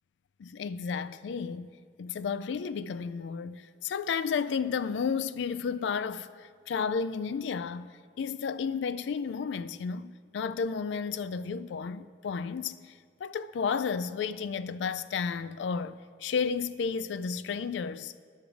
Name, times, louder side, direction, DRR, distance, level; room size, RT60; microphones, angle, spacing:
voice 1, 0.4-12.9 13.2-18.1, left 6 dB, 85° left, 0.3 m, -32 dB
12.5 x 5.4 x 4.7 m
head